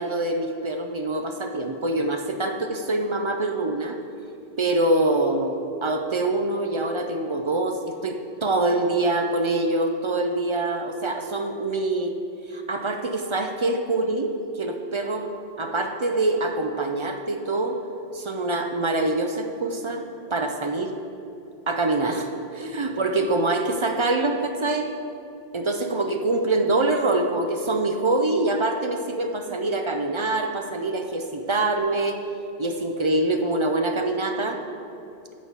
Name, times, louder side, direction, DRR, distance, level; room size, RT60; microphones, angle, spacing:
voice 1, 0.0-4.0 4.6-12.1 12.5-15.3 15.6-17.8 18.1-20.0 20.3-21.0 21.7-22.3 22.5-24.9 25.5-32.2 32.6-34.6, right 2 dB, 40° right, 5 dB, 0.4 m, -25 dB
11.0 x 4.1 x 7.3 m, 2.6 s
omnidirectional pair, 1.1 m